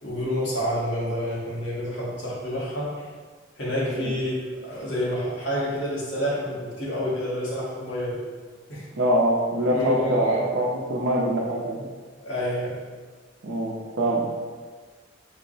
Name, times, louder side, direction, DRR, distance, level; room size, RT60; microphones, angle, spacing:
voice 1, 0.0-3.1 3.6-8.2 8.7-8.9 9.7-10.4 12.2-12.8, equal, 70° left, -6 dB, 1.3 m, -28 dB
voice 2, 8.9-11.8 13.4-14.3, right 1 dB, 70° right, -5 dB, 0.6 m, -24 dB
4.5 x 2.0 x 3.9 m, 1.5 s
head